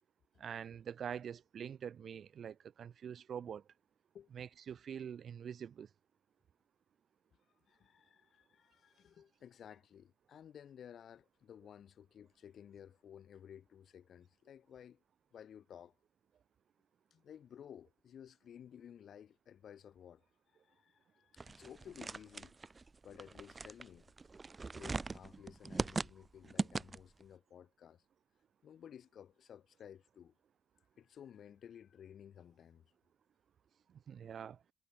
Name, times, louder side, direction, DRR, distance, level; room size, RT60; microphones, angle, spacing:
voice 1, 0.4-3.6 4.3-5.9 33.9-34.6, right 8 dB, 55° right, 1.7 m, -45 dB
voice 2, 7.7-15.0 15.3-16.0 17.1-22.6 23.0-24.1 24.7-28.0 28.6-30.4 31.0-32.9, left 9 dB, 60° left, 5.6 m, -55 dB
sound 1, 21.4-27.2, right 3 dB, 25° right, 0.4 m, -41 dB
cardioid pair, 90°, 0 cm